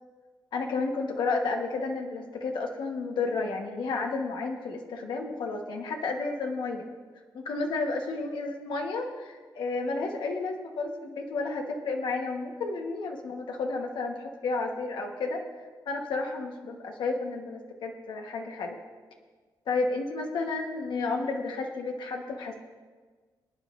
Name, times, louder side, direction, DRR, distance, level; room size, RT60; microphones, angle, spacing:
voice 1, 0.5-6.8 7.3-15.4 15.9-18.8 19.7-22.6, left 3 dB, 90° left, 2 dB, 1.3 m, -31 dB
23.0 x 9.9 x 2.6 m, 1.5 s
wide cardioid pair, 175°, 8 cm